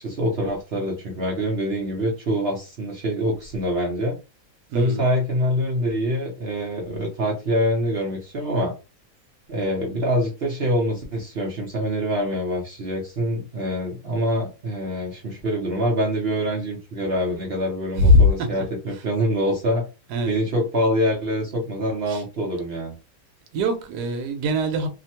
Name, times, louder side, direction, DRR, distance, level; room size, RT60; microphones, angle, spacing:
voice 1, 0.0-4.2 4.7-8.7 9.5-19.8 20.3-22.9, equal, 55° right, 0.7 m, -25 dB
voice 2, 4.7-5.0 18.0-18.5 20.1-20.3 22.1-22.2 23.5-24.9, left 2 dB, 75° right, 1.2 m, -20 dB
3.0 x 2.1 x 2.8 m
omnidirectional pair, 1.8 m